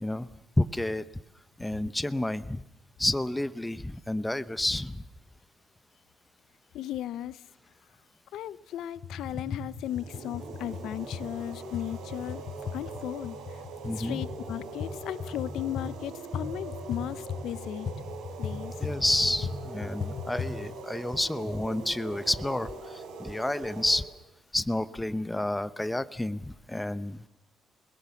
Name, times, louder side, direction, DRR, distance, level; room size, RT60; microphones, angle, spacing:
voice 1, 0.6-1.1 1.6-2.6 3.0-5.0 13.8-14.2 18.8-24.1 24.5-27.3, left 1 dB, 10° left, 0.8 m, -30 dB
voice 2, 6.7-7.4 8.3-12.4 12.7-13.6 14.0-17.9 18.4-18.7, left 12 dB, 80° left, 0.8 m, -36 dB
sound 1, 8.9-20.6, left 5 dB, 50° left, 5.7 m, -38 dB
sound 2, 9.8-24.0, right 4 dB, 90° right, 4.0 m, -42 dB
28.0 x 20.5 x 7.1 m
cardioid pair, 110°, 0 cm